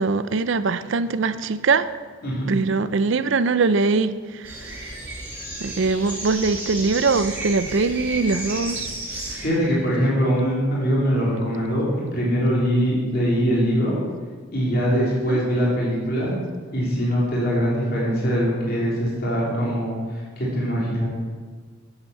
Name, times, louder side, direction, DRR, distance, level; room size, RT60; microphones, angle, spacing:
voice 1, 0.0-1.9 2.5-4.8 5.6-8.9 9.3-9.4 14.9-15.4, right 4 dB, 60° right, 0.5 m, -22 dB
sound 1, 4.4-9.5, right 1 dB, 10° right, 2.9 m, -33 dB
voice 2, 9.4-11.9 12.1-14.0 14.5-16.3 16.7-21.1, equal, 45° left, 3.2 m, -22 dB
9.5 x 8.2 x 7.1 m
head